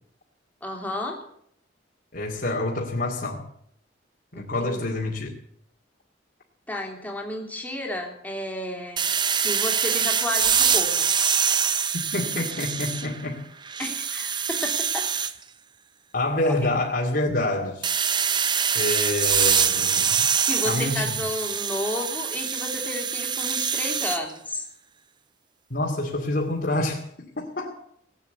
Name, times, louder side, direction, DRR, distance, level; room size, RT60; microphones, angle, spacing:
voice 1, 0.6-1.2 4.3-4.8 6.7-9.0 9.4-11.1 13.8-15.1 16.5-16.8 20.5-24.6, left 1 dB, 10° left, 0 dB, 3.0 m, -32 dB
voice 2, 2.1-3.5 4.3-5.3 12.1-13.4 16.1-17.9 18.7-20.2 20.6-21.2 25.7-27.8, left 2 dB, 50° left, -3 dB, 2.4 m, -27 dB
sound 1, 9.0-13.2 13.6-15.3 17.8-24.2, right 7 dB, 25° right, 0.6 m, -24 dB
18.5 x 8.9 x 8.1 m, 0.70 s
head